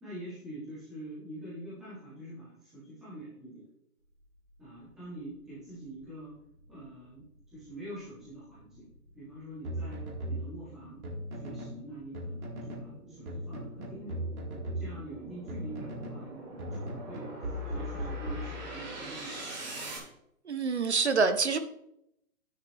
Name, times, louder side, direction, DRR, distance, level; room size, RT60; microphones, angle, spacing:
voice 1, 0.0-3.7 4.6-6.4 6.7-8.9 9.1-11.0 11.3-14.2 14.7-17.3 17.6-20.0, right 1 dB, ahead, -12 dB, 0.8 m, -45 dB
sound 1, 6.0-20.0, right 2 dB, 25° right, 2.8 m, -45 dB
sound 2, 9.6-11.8 12.1-12.9 13.3-16.3 16.6-19.0, equal, 65° right, 4.1 m, -38 dB
voice 2, 20.5-21.6, right 4 dB, 45° right, 10 dB, 0.8 m, -26 dB
11.0 x 9.9 x 3.3 m, 0.77 s
hypercardioid pair, 175°, 46 cm